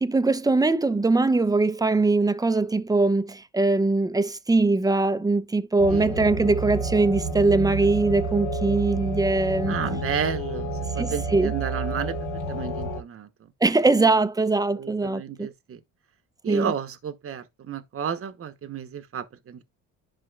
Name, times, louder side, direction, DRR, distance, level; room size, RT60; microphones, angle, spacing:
voice 1, 0.0-9.8 11.0-11.5 13.6-15.5 16.5-16.7, right 3 dB, 10° right, 0.7 m, -22 dB
sound 1, 5.8-13.0, right 2 dB, 85° left, 2.9 m, -30 dB
voice 2, 9.7-12.2 12.5-13.3 14.8-15.8 16.4-19.6, right 8 dB, 40° right, 1.1 m, -32 dB
11.5 x 5.0 x 2.4 m
supercardioid pair, 80°, 35 cm